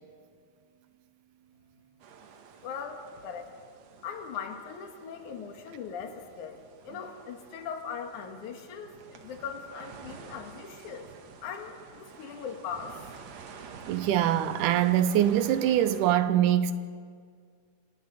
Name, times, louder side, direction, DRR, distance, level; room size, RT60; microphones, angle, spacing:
sound 1, 2.0-16.1, right 5 dB, 60° right, 2.3 m, -49 dB
voice 1, 2.6-3.5 4.0-11.1 11.4-13.0, left 6 dB, 70° left, 3.0 m, -40 dB
voice 2, 13.9-16.7, right 11 dB, 80° right, 2.1 m, -23 dB
30.0 x 25.5 x 4.1 m
omnidirectional pair, 3.7 m